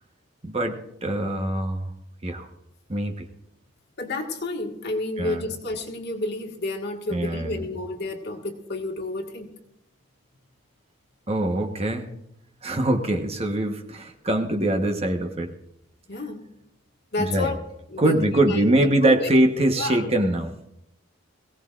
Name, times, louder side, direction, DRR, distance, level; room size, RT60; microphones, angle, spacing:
voice 1, 0.4-0.7 1.0-1.9 2.2-2.5 2.9-3.3 5.2-5.4 7.1-7.6 11.3-12.1 12.6-15.5 17.2-17.5 18.0-20.5, right 1 dB, 30° right, 5 dB, 1.1 m, -23 dB
voice 2, 4.0-9.5 16.1-16.4 17.1-17.5 17.9-18.2 18.4-19.3 19.7-20.1, left 2 dB, 55° left, 2 dB, 1.7 m, -30 dB
22.5 x 17.0 x 2.5 m, 0.81 s
head